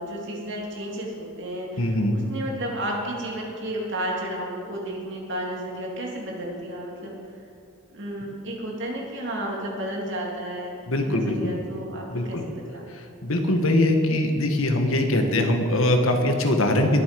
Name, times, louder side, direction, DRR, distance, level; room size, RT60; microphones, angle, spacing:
voice 1, 0.0-7.2 7.9-10.7 11.0-12.9, right 1 dB, 55° right, -2 dB, 2.8 m, -32 dB
voice 2, 1.8-2.2 10.9-11.5 12.1-12.4 12.9-17.0, left 1 dB, 65° left, 4 dB, 1.5 m, -22 dB
21.5 x 7.7 x 5.2 m, 2.4 s
head